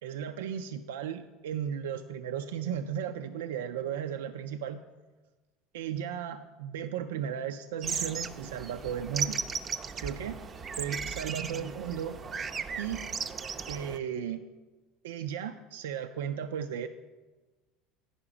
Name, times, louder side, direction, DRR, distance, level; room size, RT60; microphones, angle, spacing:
voice 1, 0.0-4.8 5.7-9.4 10.0-10.4 10.8-12.2 12.8-13.0 13.7-14.4 15.0-16.9, right 8 dB, 85° right, 7 dB, 0.4 m, -35 dB
sound 1, 7.8-14.0, right 5 dB, 35° right, 0.5 m, -36 dB
10.0 x 4.9 x 4.9 m, 1.2 s
supercardioid pair, 90°, 0 cm